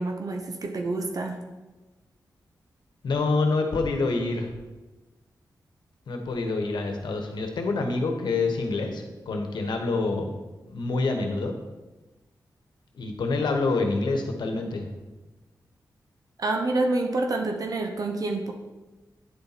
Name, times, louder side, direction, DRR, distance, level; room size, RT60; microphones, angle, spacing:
voice 1, 0.0-1.4 16.4-18.5, right 2 dB, 55° right, 4 dB, 0.8 m, -27 dB
voice 2, 3.0-4.5 6.1-10.3 10.7-11.5 12.9-14.9, left 3 dB, 85° left, 4 dB, 1.1 m, -27 dB
9.7 x 4.2 x 4.1 m, 1.1 s
wide cardioid pair, 85°, 7 cm